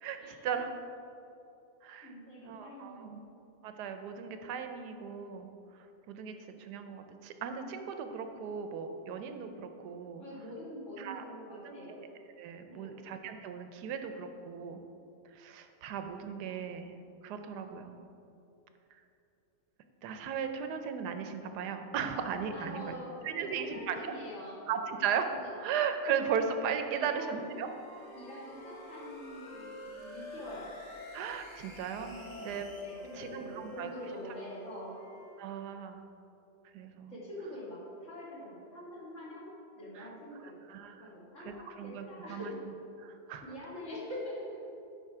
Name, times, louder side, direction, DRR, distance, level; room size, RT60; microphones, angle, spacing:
voice 1, 0.0-0.7 1.8-2.1 2.4-3.2 3.6-5.5 6.1-10.2 11.0-11.2 11.6-12.1 12.4-14.8 15.3-17.0 17.2-18.0 20.0-23.0 23.2-24.2 24.7-27.7 31.1-32.6 33.1-33.9 35.4-36.0 36.7-37.1 40.0-40.1 40.7-41.1 41.4-42.5 43.0-43.4, right 7 dB, 75° right, 7 dB, 1.2 m, -37 dB
voice 2, 2.0-3.2 10.2-12.0 12.7-13.0 22.5-24.6 25.3-25.6 26.9-27.7 28.1-30.7 32.2-35.0 37.1-39.5 39.8-40.5 41.0-42.6 43.4-44.6, left 1 dB, 45° left, -7 dB, 2.4 m, -45 dB
sound 1, 26.9-34.3, left 1 dB, 20° left, 1.3 m, -56 dB
Wind instrument woodwind instrument, 27.4-31.2 31.5-35.4, left 2 dB, 75° left, 2.8 m, -48 dB
9.2 x 5.5 x 4.8 m, 2.8 s
omnidirectional pair, 1.8 m